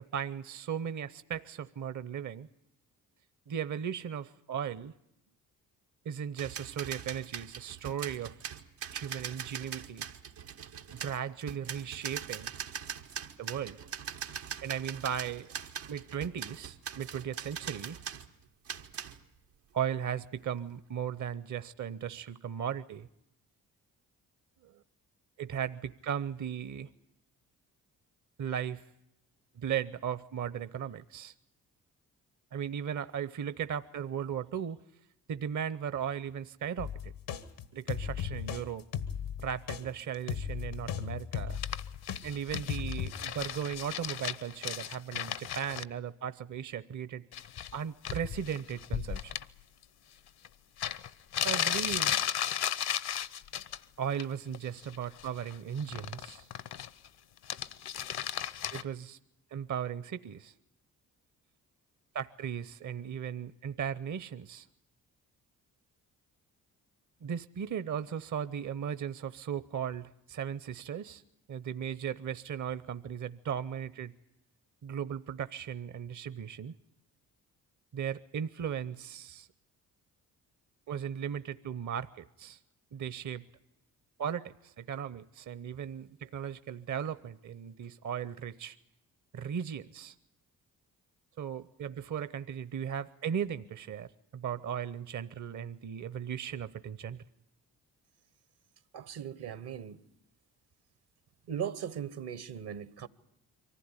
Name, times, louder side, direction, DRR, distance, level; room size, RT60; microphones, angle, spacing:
voice 1, 0.0-2.5 3.5-4.9 6.0-8.4 8.9-10.1 10.9-12.5 13.4-13.8 14.6-15.5 15.9-18.0 19.7-23.1 24.6-24.8 25.4-26.9 28.4-28.8 29.6-31.3 32.5-34.8 35.3-37.1 37.7-38.9 39.4-41.6 42.2-47.2 47.7-49.3 51.4-52.1 54.0-56.5 58.7-59.2 59.5-60.5 62.1-64.7 67.2-71.2 71.5-74.1 74.8-76.7 77.9-79.5 80.9-82.6 82.9-83.4 84.2-88.8 89.3-90.1 91.4-94.1 94.3-97.2, right 8 dB, 45° right, 0.8 m, -37 dB
sound 1, 6.4-18.3 18.6-19.2, right 8 dB, 85° right, 1.3 m, -42 dB
sound 2, 36.8-42.2 42.5-43.1, left 8 dB, 85° left, 1.4 m, -36 dB
sound 3, 41.5-45.8 47.3-47.8 48.0-49.4 50.4-50.5 50.8-53.8 54.1-54.6 54.8-57.1 57.4-58.8, left 10 dB, 65° left, 0.9 m, -35 dB
voice 2, 98.9-100.0 101.5-103.1, right 8 dB, 65° right, 1.2 m, -38 dB
24.0 x 15.5 x 9.8 m
hypercardioid pair, 45°, 42 cm